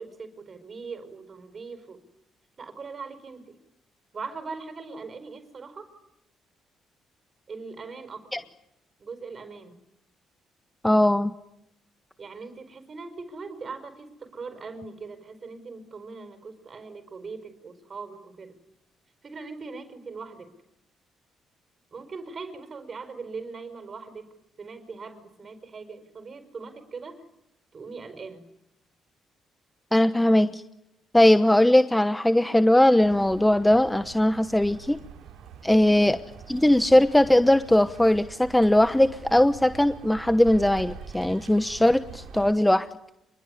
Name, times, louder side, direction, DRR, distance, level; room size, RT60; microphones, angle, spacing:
voice 1, 0.0-2.0 2.6-3.6 4.1-5.9 7.5-8.4 9.0-9.8 12.2-18.6 19.2-20.5 21.9-24.3 24.6-27.2 27.7-28.5 35.7-36.0, right 4 dB, 45° right, 10 dB, 5.3 m, -40 dB
voice 2, 10.8-11.3 29.9-30.6 31.1-35.0 35.6-36.2 36.5-42.9, left 1 dB, 10° left, 11 dB, 1.1 m, -20 dB
sound 1, 33.0-42.5, right 7 dB, 80° right, 3.2 m, -44 dB
26.5 x 21.5 x 9.9 m, 0.84 s
supercardioid pair, 75°, 0 cm